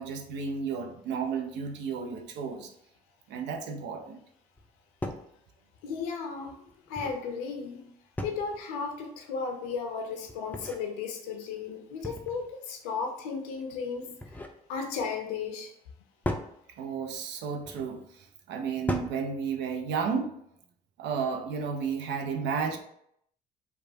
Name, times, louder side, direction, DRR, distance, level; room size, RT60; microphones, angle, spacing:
voice 1, 0.0-2.7 3.3-4.2 16.8-20.4 21.0-22.8, right 6 dB, 65° right, 5 dB, 0.5 m, -32 dB
sound 1, 4.6-4.7 5.0-5.3 6.7-7.2 8.1-8.6 10.3-10.8 12.0-12.5 14.0-14.6 16.2-16.5 17.6-17.9 18.9-19.2, left 1 dB, 10° left, 0.4 m, -36 dB
voice 2, 5.8-7.9 8.2-14.4 14.7-15.7, left 5 dB, 80° left, 4 dB, 0.4 m, -35 dB
3.0 x 2.2 x 2.7 m, 0.71 s
hypercardioid pair, 55°, 20 cm